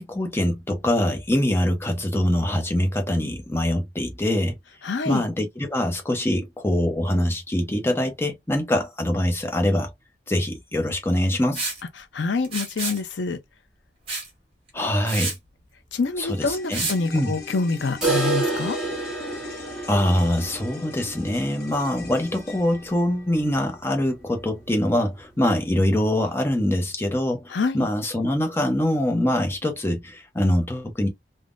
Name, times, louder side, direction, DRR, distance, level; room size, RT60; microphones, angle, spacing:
voice 1, 0.0-4.6 5.0-9.9 10.3-11.7 14.7-15.3 16.2-17.3 19.9-31.1, left 1 dB, 15° left, 0.6 m, -24 dB
voice 2, 4.8-5.2 12.1-13.4 15.9-18.8 27.5-27.9, left 4 dB, 85° left, 0.6 m, -26 dB
Liquid, 11.5-11.8 12.4-13.0 14.1-14.3 14.7-14.8 15.1-15.4 16.7-17.0, right 3 dB, 30° right, 1.7 m, -29 dB
sound 1, 16.3-24.8 25.0-25.1, left 3 dB, 55° left, 0.8 m, -42 dB
sound 2, 18.0-23.8 24.1-24.2 24.6-24.7 25.2-25.3 26.1-26.2, right 3 dB, 5° right, 1.0 m, -30 dB
3.5 x 2.0 x 2.4 m
head